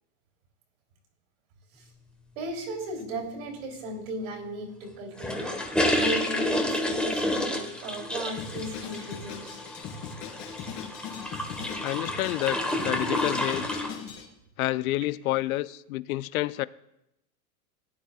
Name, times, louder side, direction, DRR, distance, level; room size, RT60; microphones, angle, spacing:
voice 1, 2.3-5.7 6.0-9.6, right 1 dB, 65° right, 3.3 m, -36 dB
sound 1, 5.2-13.9, left 1 dB, ahead, 1.2 m, -30 dB
Drum kit, 8.4-14.2, left 7 dB, 45° left, 3.0 m, -40 dB
voice 2, 11.8-12.6 12.8-13.6 14.6-16.7, left 17 dB, 70° left, 0.5 m, -28 dB
17.0 x 10.5 x 2.4 m
hypercardioid pair, 120°, 44 cm